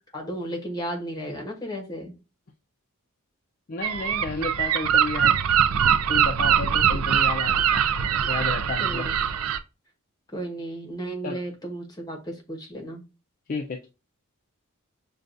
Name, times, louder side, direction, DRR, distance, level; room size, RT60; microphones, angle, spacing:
voice 1, 0.1-2.1 8.8-9.2 10.3-13.0, right 1 dB, 20° left, 2 dB, 1.0 m, -34 dB
voice 2, 3.7-5.4 6.1-7.8 8.2-9.1 11.2-11.4 13.5-13.9, left 3 dB, 40° left, 2 dB, 0.4 m, -32 dB
Gull seagull, 3.8-9.6, right 8 dB, 80° right, 0.4 m, -22 dB
6.4 x 2.3 x 2.5 m, 0.29 s
head